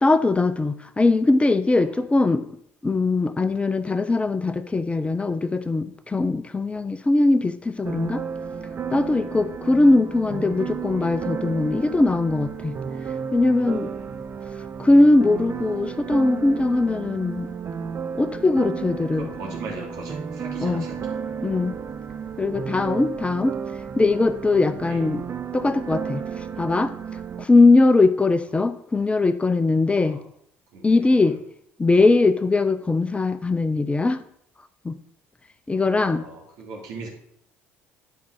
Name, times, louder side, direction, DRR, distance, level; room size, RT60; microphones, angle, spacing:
voice 1, 0.0-2.4 2.8-8.2 8.9-12.7 13.3-13.9 14.8-17.5 18.1-19.3 20.6-20.9 21.4-21.7 22.4-23.6 24.0-25.2 25.5-26.2 26.6-26.9 27.4-30.2 30.8-31.4 31.8-34.2 34.8-35.0 35.7-36.2, left 2 dB, 15° left, 11 dB, 0.7 m, -20 dB
sound 1, 7.8-27.4, right 6 dB, 35° right, 0.7 m, -33 dB
voice 2, 13.6-14.2 19.0-21.5 24.8-25.0 30.0-30.2 30.7-31.4 35.7-37.1, right 3 dB, 65° right, -1 dB, 3.1 m, -39 dB
10.0 x 5.3 x 4.9 m, 0.70 s
hypercardioid pair, 60°, 7 cm